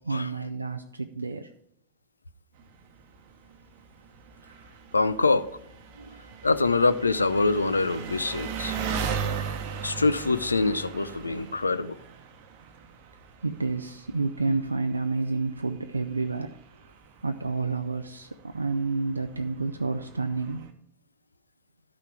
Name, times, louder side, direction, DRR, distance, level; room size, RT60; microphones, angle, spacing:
voice 1, 0.0-1.5 6.0-6.2 13.4-16.5 17.2-20.7, right 3 dB, 80° right, 7 dB, 0.4 m, -29 dB
Engine, 2.6-20.7, right 6 dB, 50° right, 0.9 m, -39 dB
voice 2, 4.9-5.5 6.4-8.7 9.8-12.0, left 3 dB, 80° left, 14 dB, 0.4 m, -24 dB
12.0 x 5.6 x 4.7 m, 0.74 s
figure-of-eight pair, 90°, 0 cm